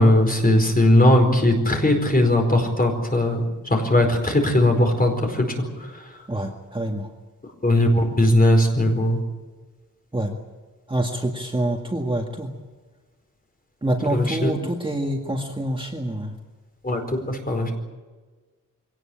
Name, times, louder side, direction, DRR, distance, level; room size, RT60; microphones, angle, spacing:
voice 1, 0.0-5.7 7.6-9.2 14.1-14.5 16.8-17.7, left 1 dB, 30° left, 3 dB, 4.7 m, -19 dB
voice 2, 6.3-7.1 10.1-10.3 10.9-12.5 13.8-16.3, right 1 dB, 15° right, 1 dB, 2.0 m, -26 dB
23.5 x 18.0 x 8.8 m, 1.3 s
wide cardioid pair, 145°, 32 cm